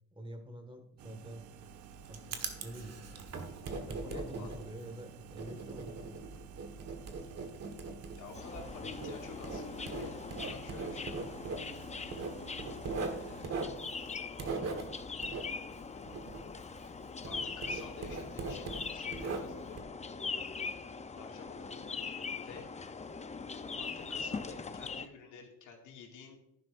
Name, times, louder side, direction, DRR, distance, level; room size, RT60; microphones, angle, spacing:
voice 1, 0.1-1.5 2.1-3.0 3.8-6.4, right 1 dB, 15° right, 6 dB, 1.8 m, -47 dB
sound 1, 1.0-13.4, right 9 dB, 75° right, 0.7 m, -53 dB
Writing, 1.6-17.0 17.2-19.8, right 4 dB, 55° right, 1.6 m, -41 dB
voice 2, 4.1-4.5 8.1-10.2 10.5-11.3 12.9-13.7 17.2-19.9 21.1-21.8 22.3-22.7 23.7-26.4, left 5 dB, 80° left, 0 dB, 2.3 m, -50 dB
sound 2, 8.3-25.1, left 4 dB, 25° left, 0.6 m, -41 dB
11.0 x 11.0 x 2.6 m, 0.81 s
cardioid pair, 90°, 30 cm